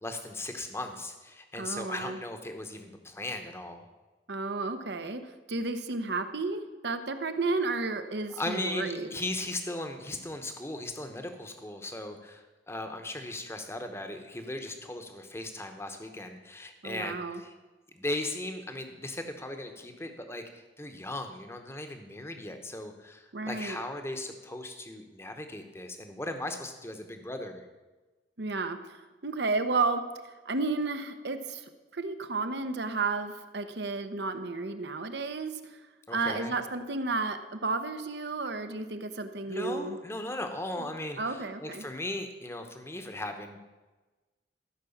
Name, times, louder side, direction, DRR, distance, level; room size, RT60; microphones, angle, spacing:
voice 1, 0.0-3.9 8.4-17.5 17.9-27.7 36.1-36.5 39.5-43.6, left 1 dB, 15° left, 6 dB, 1.0 m, -37 dB
voice 2, 1.5-2.2 4.3-9.1 16.8-17.4 23.3-23.8 28.4-30.0 30.5-35.8 36.1-40.0 40.8-40.9 41.2-41.8, right 3 dB, 60° right, 9 dB, 0.9 m, -32 dB
14.5 x 6.1 x 7.1 m, 1.2 s
head